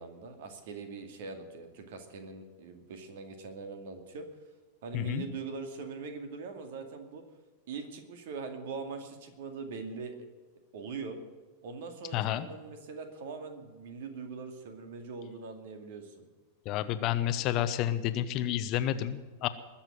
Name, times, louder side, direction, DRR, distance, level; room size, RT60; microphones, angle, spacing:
voice 1, 0.0-4.3 4.8-7.2 7.7-10.2 10.7-11.2 11.6-16.3, right 4 dB, 55° right, 7 dB, 2.3 m, -42 dB
voice 2, 4.9-5.2 12.1-12.5 16.7-19.5, left 12 dB, 40° left, 12 dB, 0.8 m, -30 dB
21.0 x 7.3 x 9.3 m, 1.3 s
figure-of-eight pair, 90°, 0 cm